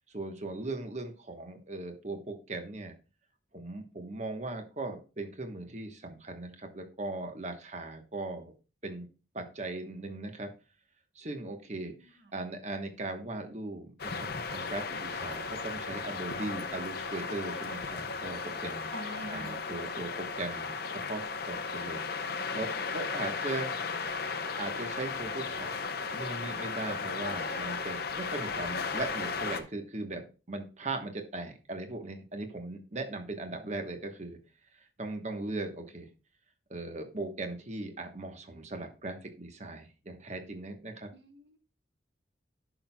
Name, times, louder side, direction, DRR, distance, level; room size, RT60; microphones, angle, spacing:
voice 1, 0.1-2.9 3.5-8.5 8.8-9.1 9.3-10.5 11.1-18.9 19.3-22.0 22.2-23.7 24.6-25.7 26.1-34.4 34.7-36.1 36.7-41.1, right 2 dB, 35° right, 6 dB, 1.1 m, -39 dB
sound 1, 14.0-29.6, left 4 dB, 50° left, 0.7 m, -35 dB
voice 2, 18.9-19.5 41.1-41.6, right 1 dB, 65° right, 6 dB, 1.3 m, -45 dB
11.5 x 6.0 x 2.2 m, 0.33 s
head